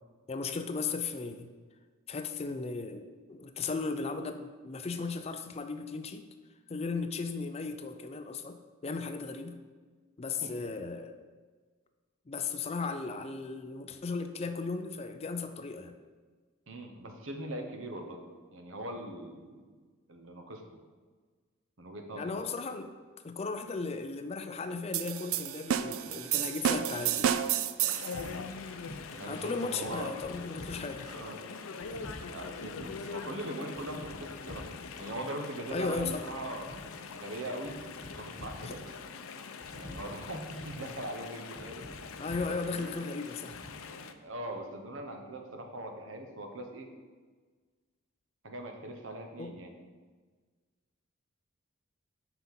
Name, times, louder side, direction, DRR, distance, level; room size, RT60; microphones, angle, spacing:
voice 1, 0.3-1.5 2.1-6.3 6.7-9.6 10.2-11.1 12.3-16.0 22.2-22.9 23.2-27.3 29.3-31.1 35.7-36.2 38.6-38.7 42.2-43.6 49.4-49.6, left 4 dB, 30° left, 8 dB, 0.4 m, -36 dB
voice 2, 16.7-18.2 18.5-19.7 20.1-20.6 21.8-22.5 29.1-30.2 31.0-31.4 32.3-34.7 35.0-36.7 37.1-37.8 38.2-38.8 39.8-41.8 42.7-42.9 44.2-46.9 48.4-49.7, right 1 dB, 70° right, 4 dB, 1.0 m, -41 dB
sound 1, 24.9-28.2, right 9 dB, 85° right, 0.4 m, -30 dB
Chatter / Stream, 27.8-44.1, left 5 dB, 90° left, 0.5 m, -44 dB
sound 2, 28.1-29.3 29.6-31.2 31.5-33.2 33.5-35.1 35.4-37.1 37.4-39.0 39.4-41.0 41.3-42.9 43.3-43.7, left 1 dB, 5° right, 2.0 m, -48 dB
5.9 x 5.4 x 5.8 m, 1.4 s
head